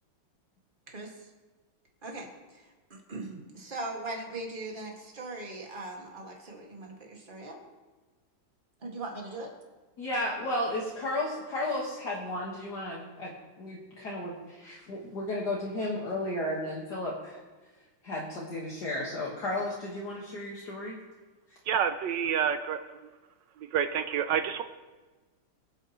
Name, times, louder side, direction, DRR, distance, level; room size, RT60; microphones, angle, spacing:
voice 1, 0.9-1.3 2.0-7.6 8.8-9.5, right 2 dB, 25° right, 0 dB, 1.9 m, -40 dB
voice 2, 10.0-13.3 13.6-17.4 18.0-21.0, left 1 dB, 55° left, -4 dB, 2.0 m, -33 dB
voice 3, 21.7-23.0 23.7-24.6, right 8 dB, 75° right, 10 dB, 1.1 m, -28 dB
23.5 x 8.3 x 3.0 m, 1.3 s
omnidirectional pair, 2.3 m